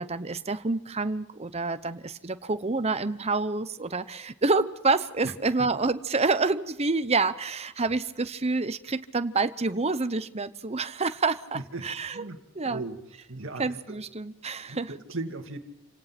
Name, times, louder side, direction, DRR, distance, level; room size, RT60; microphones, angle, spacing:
voice 1, 0.0-12.3 12.5-12.8 13.6-14.9, right 3 dB, 30° right, 12 dB, 0.8 m, -28 dB
voice 2, 11.7-12.4 12.6-13.0 13.3-14.0 14.7-15.6, right 2 dB, 60° right, 6 dB, 2.2 m, -37 dB
28.0 x 18.0 x 6.0 m, 0.90 s
head